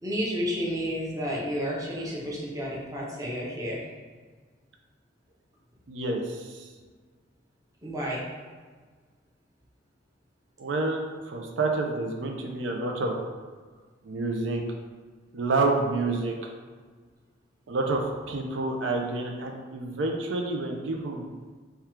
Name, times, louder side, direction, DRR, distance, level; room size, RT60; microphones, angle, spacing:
voice 1, 0.0-3.8 7.8-8.3, equal, 20° right, -5 dB, 0.6 m, -31 dB
voice 2, 5.9-6.7 10.6-13.1 14.0-14.6 15.3-16.5 17.7-21.3, right 3 dB, 80° right, 2 dB, 0.5 m, -29 dB
3.6 x 2.3 x 4.3 m, 1.5 s
head